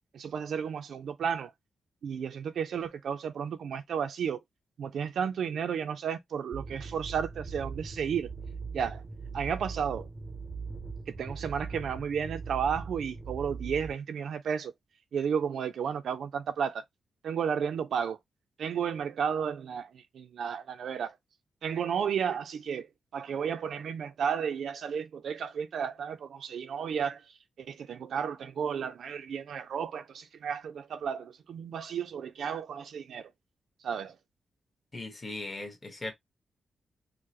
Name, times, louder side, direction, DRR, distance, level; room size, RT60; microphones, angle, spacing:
voice 1, 0.1-1.5 2.0-4.4 4.8-8.3 8.7-9.0 9.3-10.1 11.2-14.7 15.1-16.8 17.2-18.2 18.6-21.2 21.6-27.3 27.6-33.3 33.8-34.2, right 7 dB, 75° right, 0.5 m, -33 dB
sound 1, 6.5-13.9, right 4 dB, 20° right, 0.6 m, -40 dB
voice 2, 34.9-36.1, left 2 dB, 20° left, 1.3 m, -38 dB
4.6 x 2.1 x 2.9 m
wide cardioid pair, 120°, 0 cm